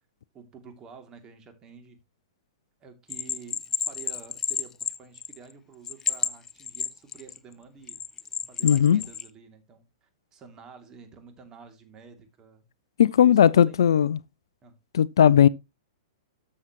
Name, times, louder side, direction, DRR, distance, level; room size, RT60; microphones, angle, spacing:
voice 1, 0.3-2.0 2.8-8.0 8.5-12.7 13.1-13.8 14.6-14.8, right 6 dB, 25° right, 2.8 m, -49 dB
Bell, 3.1-5.5 5.8-7.4 7.9-9.3, left 7 dB, 20° left, 0.8 m, -30 dB
voice 2, 8.6-9.0 13.0-14.2 14.9-15.5, left 9 dB, 60° left, 0.4 m, -17 dB
12.5 x 7.5 x 3.1 m
figure-of-eight pair, 105°, 3 cm